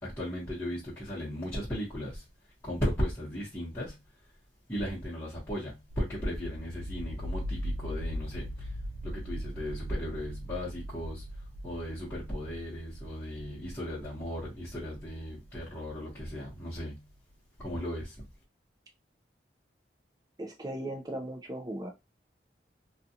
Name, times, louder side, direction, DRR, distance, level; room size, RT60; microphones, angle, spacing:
voice 1, 0.0-2.2 2.6-4.0 4.7-8.7 9.0-11.2 11.6-17.1 17.6-18.2, equal, 15° left, 1.0 m, -36 dB
sound 1, 5.9-16.6, equal, 80° right, 0.4 m, -40 dB
voice 2, 20.4-21.9, right 1 dB, 20° right, 0.5 m, -37 dB
2.4 x 2.4 x 2.7 m
head